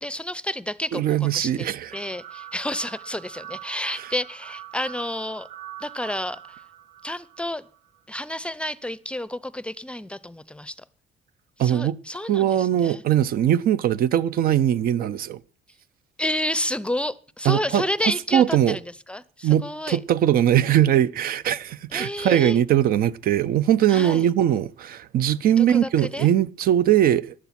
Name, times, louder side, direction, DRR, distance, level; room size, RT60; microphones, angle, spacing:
voice 1, 0.0-5.5 5.8-6.6 7.0-7.6 8.1-10.8 11.6-13.0 16.2-18.8 19.1-20.0 21.9-22.6 23.9-24.3 25.6-26.3, left 1 dB, 5° left, 0.6 m, -30 dB
voice 2, 0.9-1.9 11.6-12.0 12.3-15.4 17.4-18.8 19.4-27.3, right 11 dB, 60° right, 0.7 m, -21 dB
sound 1, 1.9-8.0, right 11 dB, 85° right, 1.8 m, -43 dB
14.5 x 11.0 x 5.9 m
cardioid pair, 110°, 17 cm